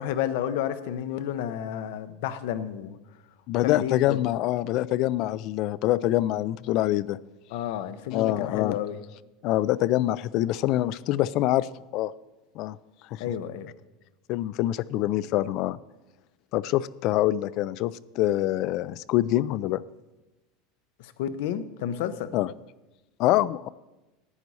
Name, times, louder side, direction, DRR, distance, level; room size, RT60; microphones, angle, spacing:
voice 1, 0.0-3.0 3.6-4.2 7.5-9.0 13.2-13.7 21.0-22.3, left 10 dB, 70° left, 13 dB, 0.7 m, -31 dB
voice 2, 3.5-7.2 8.1-8.8 9.4-12.1 12.6-12.8 13.1-13.2 14.3-15.8 16.5-19.8 22.3-22.5 23.2-23.7, left 15 dB, 50° left, 19 dB, 0.3 m, -25 dB
11.0 x 9.3 x 4.1 m, 1.0 s
supercardioid pair, 145°, 0 cm